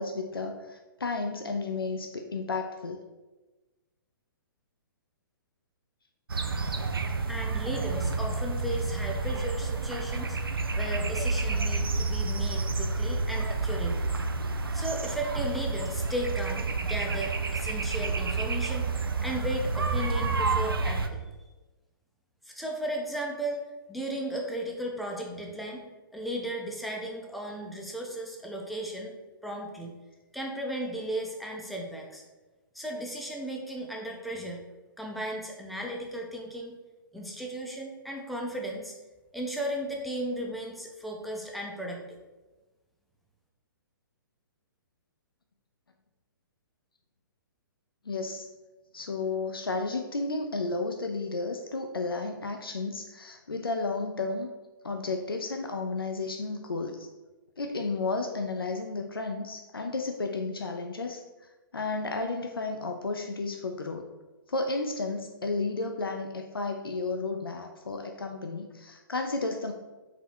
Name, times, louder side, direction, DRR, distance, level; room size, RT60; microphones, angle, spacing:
voice 1, 0.0-3.0 48.1-48.5 48.9-54.5 54.8-57.1 57.6-61.2 61.7-64.1 64.5-69.7, left 3 dB, 85° left, 4 dB, 0.4 m, -32 dB
sound 1, 6.3-21.1, right 3 dB, 80° right, 0.4 m, -29 dB
voice 2, 7.3-14.1 14.7-18.9 19.2-21.3 22.4-23.6 23.9-25.8 26.1-29.2 29.4-30.0 30.3-32.2 32.7-34.6 35.0-36.8 37.1-38.9 39.3-42.2, right 1 dB, ahead, -1 dB, 0.5 m, -35 dB
3.9 x 2.8 x 4.6 m, 1.2 s
figure-of-eight pair, 120°, 12 cm